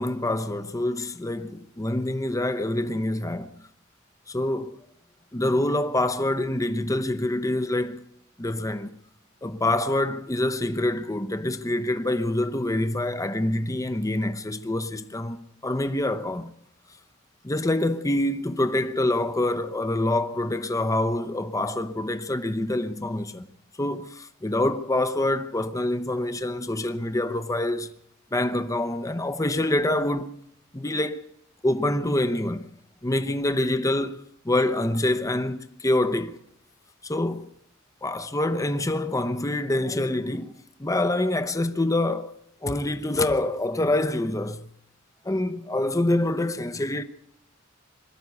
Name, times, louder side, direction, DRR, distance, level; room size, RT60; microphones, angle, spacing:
voice 1, 0.0-3.6 4.3-4.8 5.3-8.0 8.4-8.9 9.4-16.5 17.4-23.5 23.8-27.9 28.3-30.3 30.7-31.2 31.6-32.7 33.0-36.4 37.0-37.5 38.0-40.5 40.8-42.3 42.6-44.7 45.2-47.0, left 1 dB, 15° left, 0.8 m, -26 dB
21.5 x 13.0 x 9.5 m
head